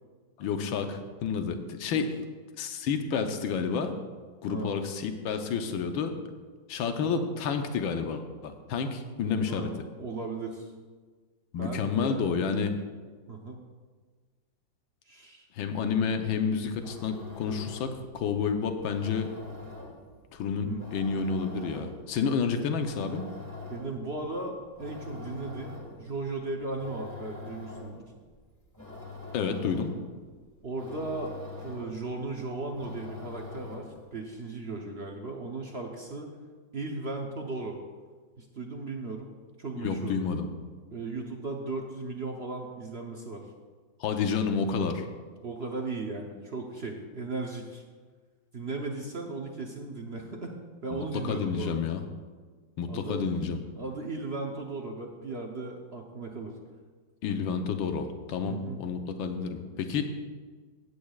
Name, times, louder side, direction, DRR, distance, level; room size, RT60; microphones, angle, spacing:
voice 1, 0.4-2.1 2.6-4.0 4.4-6.2 6.7-9.7 11.5-12.8 15.6-19.3 20.3-23.3 29.3-29.9 39.8-40.5 44.0-45.0 50.9-52.0 52.8-53.6 57.2-60.0, left 6 dB, 85° left, 6 dB, 1.6 m, -30 dB
voice 2, 4.5-4.8 9.5-10.7 11.6-12.3 13.3-13.6 15.1-15.5 15.8-15.9 20.6-20.8 23.7-28.0 30.6-31.4 31.6-36.3 36.7-37.8 38.4-39.3 39.6-40.2 40.9-43.4 45.4-47.8 48.5-50.5 50.8-51.8 52.9-53.3 53.8-56.5 58.5-58.8 59.9-60.0, right 3 dB, 50° right, 1 dB, 0.7 m, -36 dB
sound 1, 16.7-34.1, left 3 dB, 10° left, 1.4 m, -45 dB
16.5 x 8.6 x 2.4 m, 1.5 s
omnidirectional pair, 2.1 m